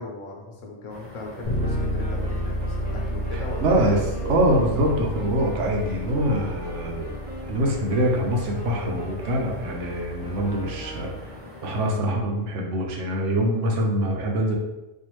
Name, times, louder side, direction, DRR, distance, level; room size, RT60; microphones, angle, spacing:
voice 1, 0.0-3.9 11.2-11.3, left 2 dB, 75° left, 0 dB, 1.2 m, -38 dB
sound 1, 0.9-12.0, left 1 dB, 10° right, 1.1 m, -44 dB
Bass guitar, 1.4-11.3, equal, 45° left, 0.5 m, -32 dB
Wind instrument woodwind instrument, 1.6-11.5, equal, 45° right, 0.6 m, -42 dB
voice 2, 3.3-7.1 7.5-11.3 11.6-14.6, right 1 dB, 70° right, 1 dB, 1.0 m, -24 dB
4.3 x 2.5 x 3.0 m, 1.0 s
omnidirectional pair, 1.3 m